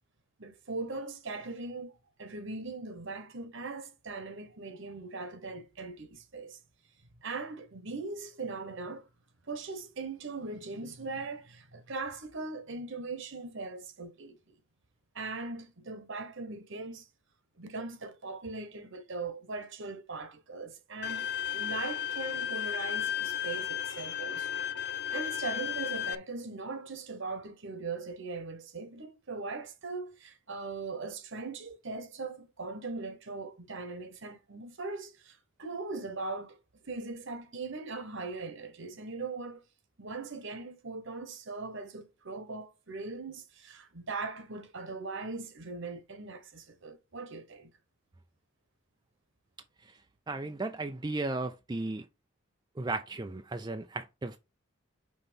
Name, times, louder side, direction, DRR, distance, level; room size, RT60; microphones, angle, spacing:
voice 1, 0.4-6.6 7.2-9.1 9.4-14.5 15.1-17.1 17.6-21.3 21.5-24.6 25.1-36.6 36.8-39.7 40.0-47.7, right 3 dB, 60° right, 1.1 m, -40 dB
Bowed string instrument, 21.0-26.2, left 9 dB, 55° left, 0.5 m, -34 dB
voice 2, 50.3-52.1 52.8-54.4, right 2 dB, 20° right, 0.4 m, -35 dB
5.7 x 3.9 x 5.1 m
head